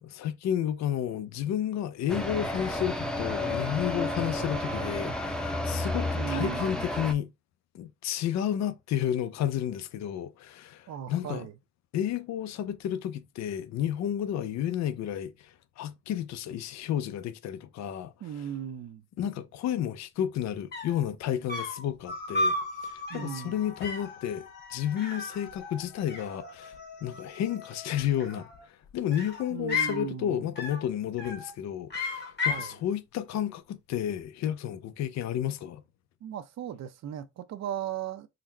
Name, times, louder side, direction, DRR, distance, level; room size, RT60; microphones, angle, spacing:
voice 1, 0.0-7.3 7.7-11.5 11.9-18.5 19.2-22.6 22.8-35.8, left 10 dB, 65° left, 0.5 m, -32 dB
sound 1, 2.1-7.1, left 1 dB, ahead, 0.6 m, -31 dB
voice 2, 6.1-6.7 10.9-11.5 18.2-19.0 23.1-23.5 29.5-30.4 32.5-32.7 36.2-38.3, right 10 dB, 60° right, 0.6 m, -36 dB
sound 2, 20.4-20.5 20.7-21.1 21.5-21.9 22.3-22.7 23.1-23.4 23.8-24.2 25.0-25.8 26.1-26.8 28.0-28.6 29.1-30.0 30.6-30.9 31.2-31.5 31.9-32.7, left 3 dB, 35° left, 1.4 m, -33 dB
sound 3, 22.0-28.1, left 4 dB, 90° left, 1.1 m, -45 dB
3.9 x 2.1 x 4.3 m
cardioid pair, 90°, 30 cm